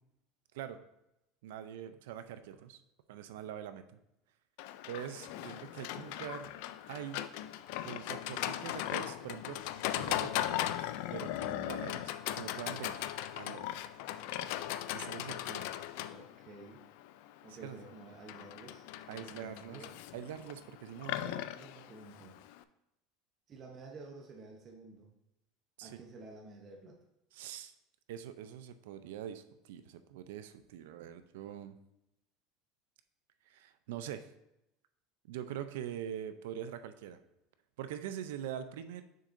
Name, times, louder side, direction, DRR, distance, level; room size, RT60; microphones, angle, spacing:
voice 1, 1.4-2.8 3.1-4.0 4.9-6.5 6.9-7.3 7.8-9.6 9.9-13.1 13.3-13.8 14.9-15.7 17.5-17.8 19.1-19.9 20.1-21.3 25.8-26.0 27.3-27.7 28.1-31.8 33.5-34.3 35.2-37.2 37.8-39.0, right 10 dB, 90° right, 11 dB, 0.5 m, -44 dB
Livestock farm animals working animals, 4.6-22.6, left 13 dB, 70° left, 0.3 m, -38 dB
voice 2, 16.1-16.8 17.4-20.1 21.2-22.4 23.5-25.1 25.8-27.0, right 3 dB, 30° right, 1 dB, 0.8 m, -51 dB
6.5 x 6.5 x 2.6 m, 0.86 s
cardioid pair, 150°, 0 cm